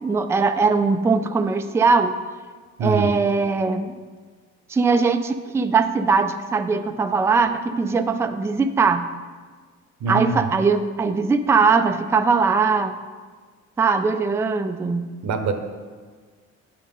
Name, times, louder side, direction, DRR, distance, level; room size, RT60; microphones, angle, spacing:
voice 1, 0.0-2.1 2.8-4.0 4.7-9.0 10.1-13.0 13.8-15.1, right 4 dB, 10° right, 8 dB, 0.3 m, -20 dB
voice 2, 2.8-3.1 10.0-10.4 15.2-15.5, right 4 dB, 70° right, 6 dB, 0.8 m, -23 dB
9.3 x 3.6 x 5.5 m, 1.5 s
cardioid pair, 90°, 30 cm